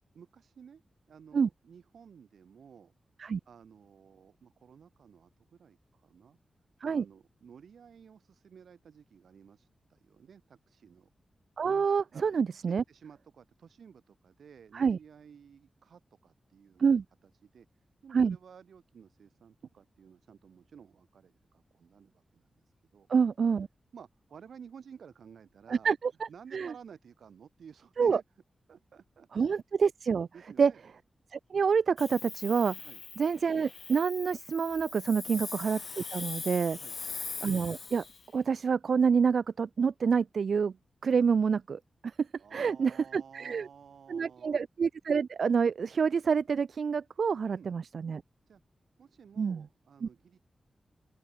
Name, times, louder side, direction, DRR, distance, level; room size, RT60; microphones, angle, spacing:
voice 1, 0.1-0.8 1.1-2.9 3.5-6.4 6.8-11.1 12.1-12.3 12.7-23.1 23.9-25.9 26.3-28.2 28.7-29.5 30.3-30.8 32.8-33.0 35.3-35.5 36.8-37.2 42.4-44.6 47.5-47.7 48.5-48.6 49.0-50.4, right 7 dB, 90° right, 6.8 m, -54 dB
voice 2, 11.6-12.8 14.7-15.0 16.8-17.0 18.1-18.4 23.1-23.7 25.7-26.1 26.5-26.7 28.0-28.2 29.3-30.3 30.6-30.7 31.3-32.8 33.2-36.8 37.4-38.0 38.3-40.7 41.0-41.8 42.5-43.7 44.1-48.2 49.4-49.6 50.0-50.1, right 6 dB, 70° right, 0.4 m, -27 dB
Hiss, 32.0-38.3, left 5 dB, 60° left, 0.6 m, -41 dB
open air
wide cardioid pair, 85°, 0 cm